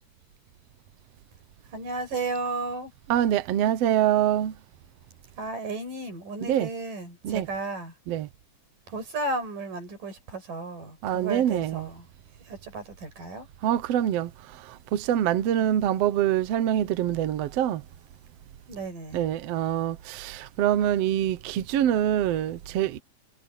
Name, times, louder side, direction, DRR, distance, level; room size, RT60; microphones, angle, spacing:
voice 1, 1.7-2.9 5.4-8.0 8.9-12.1 12.4-13.5 18.7-19.2, right 3 dB, 85° right, 7.5 m, -34 dB
voice 2, 3.1-4.5 6.4-6.7 7.2-7.5 8.1-8.3 11.0-11.9 13.6-14.3 14.9-17.8 19.1-23.0, right 11 dB, 65° right, 1.7 m, -25 dB
omnidirectional pair, 3.7 m